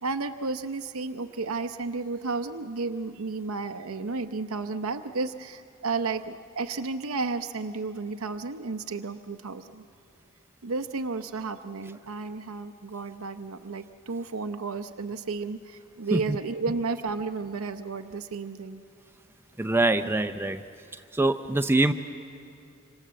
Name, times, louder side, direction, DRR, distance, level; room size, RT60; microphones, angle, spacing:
voice 1, 0.0-9.8 10.6-18.8, right 4 dB, 90° right, 8 dB, 0.8 m, -32 dB
voice 2, 19.6-20.6 21.1-21.9, right 2 dB, 10° right, 9 dB, 0.6 m, -24 dB
26.5 x 26.0 x 7.6 m, 2.5 s
head